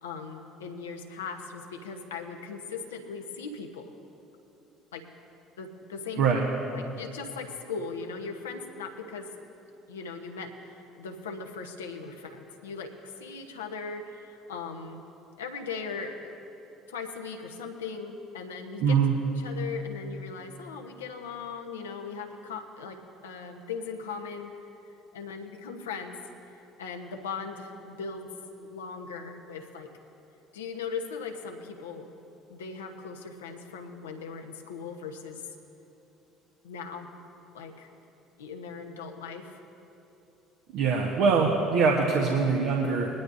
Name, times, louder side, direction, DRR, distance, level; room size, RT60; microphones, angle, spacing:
voice 1, 0.0-3.9 4.9-5.0 5.6-6.2 6.7-9.3 9.9-15.0 15.4-16.4 16.9-19.0 19.4-24.5 25.1-26.2 26.8-28.3 28.6-29.9 30.5-32.1 32.5-35.5 36.6-37.1 37.5-37.9 38.4-39.6 40.9-41.1 42.2-42.5, left 5 dB, 80° left, 3 dB, 1.1 m, -39 dB
voice 2, 18.8-19.1 40.7-43.1, right 5 dB, 60° right, -1 dB, 1.3 m, -23 dB
21.0 x 11.5 x 2.7 m, 2.9 s
figure-of-eight pair, 60°, 0 cm